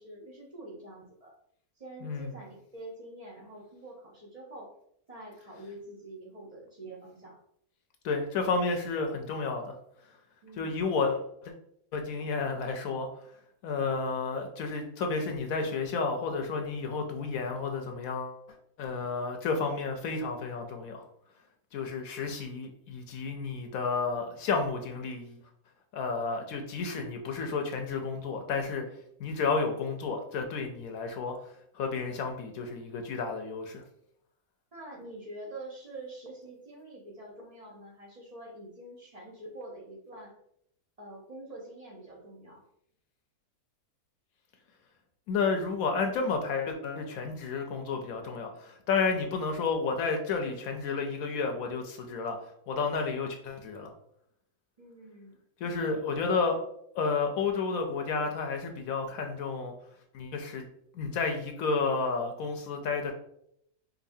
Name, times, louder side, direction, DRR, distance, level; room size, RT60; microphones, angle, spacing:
voice 1, 0.0-1.3 1.8-4.7 5.1-7.4 10.4-10.8 34.7-40.3 41.0-42.6 54.8-55.4, right 1 dB, 35° right, -3 dB, 0.6 m, -46 dB
voice 2, 2.0-2.3 8.0-9.8 10.6-11.5 11.9-13.1 13.6-18.4 18.8-21.0 21.7-25.4 25.9-28.9 29.2-31.3 31.7-33.8 45.3-52.4 52.7-53.9 55.6-56.6 56.9-59.7 60.1-60.7 60.9-63.1, left 4 dB, 70° left, 4 dB, 1.0 m, -31 dB
4.9 x 2.7 x 2.6 m, 0.72 s
omnidirectional pair, 1.6 m